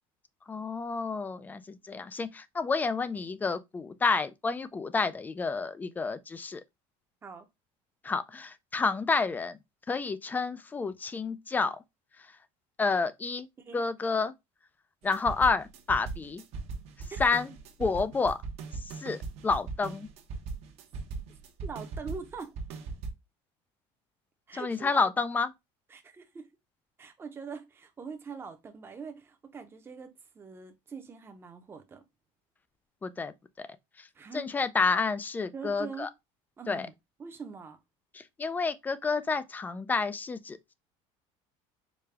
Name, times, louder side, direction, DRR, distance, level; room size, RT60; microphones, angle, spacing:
voice 1, 0.5-6.6 8.0-9.6 9.9-11.8 12.8-13.5 13.7-14.3 15.0-16.4 17.2-17.5 17.8-18.4 19.0-20.1 24.5-25.5 33.0-33.7 34.0-34.1 34.3-36.1 36.7-36.9 38.1-40.7, left 4 dB, 15° left, 0.3 m, -29 dB
sound 1, 15.0-23.1, right 4 dB, 55° right, 0.9 m, -39 dB
voice 2, 21.6-22.5 24.5-25.1 25.9-26.5 27.0-32.0 34.1-34.5 35.5-36.1 36.6-36.9 37.2-37.8, right 5 dB, 20° right, 0.7 m, -43 dB
5.0 x 2.2 x 3.2 m
cardioid pair, 145°, 13 cm